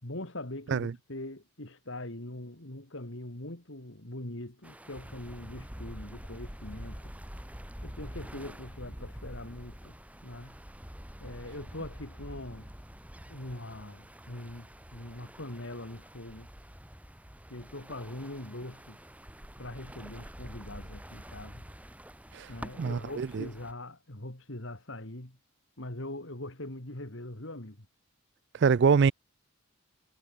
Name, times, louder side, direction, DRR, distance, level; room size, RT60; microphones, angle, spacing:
voice 1, 0.0-7.1 7.8-10.0 10.2-10.6 11.2-12.7 13.3-16.5 17.5-19.0 19.6-21.6 22.5-25.4 25.8-27.9, left 1 dB, 55° left, 2.8 m, -42 dB
sound 1, 4.6-23.7, equal, 5° right, 3.0 m, -46 dB
voice 2, 22.8-23.5 28.5-29.1, right 6 dB, 50° right, 0.4 m, -24 dB
head